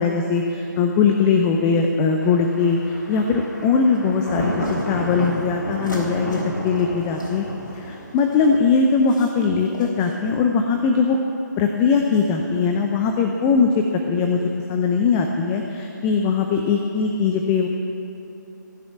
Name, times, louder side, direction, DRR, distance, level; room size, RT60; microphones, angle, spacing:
voice 1, 0.0-4.5 4.9-7.5 7.7-11.2 11.6-14.4 14.7-17.7, left 5 dB, 20° left, 3 dB, 0.6 m, -20 dB
Thunder, 2.2-8.6, equal, 65° left, 3.8 m, -30 dB
sound 1, 3.1-4.0 4.6-8.5 8.9-9.5 9.7-10.3, left 1 dB, 80° left, 4.1 m, -45 dB
16.0 x 7.2 x 8.4 m, 2.9 s
figure-of-eight pair, 145°, 10 cm